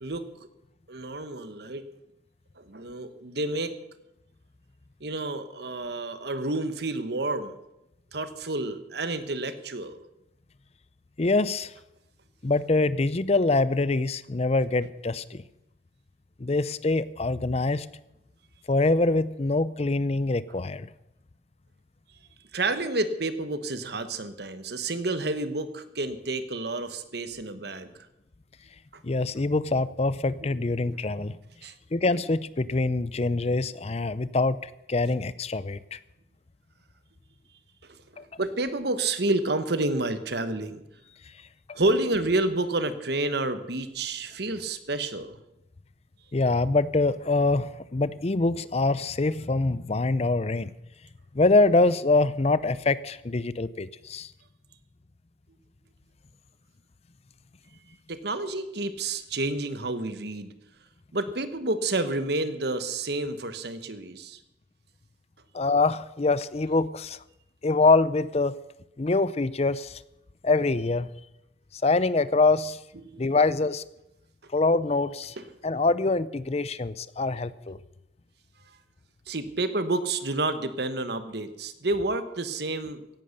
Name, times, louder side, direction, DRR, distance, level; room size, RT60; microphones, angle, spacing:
voice 1, 0.9-1.8 2.6-3.8 5.0-7.6 8.1-10.0 22.5-28.1 28.9-29.0 31.6-31.7 37.8-40.8 41.7-45.4 58.1-60.5 61.1-64.4 73.0-73.3 75.4-75.5 79.3-83.0, right 2 dB, 55° right, 11 dB, 1.2 m, -29 dB
voice 2, 11.2-11.7 12.4-15.4 16.4-17.9 18.7-20.9 29.0-31.3 31.9-36.0 38.2-38.3 41.7-41.8 46.3-50.7 51.3-54.3 65.5-67.2 67.6-68.6 69.0-70.0 70.4-71.1 71.7-72.8 73.2-73.8 74.5-75.4 75.6-77.8, left 3 dB, 35° left, 17 dB, 0.5 m, -24 dB
16.5 x 11.0 x 6.6 m, 0.88 s
head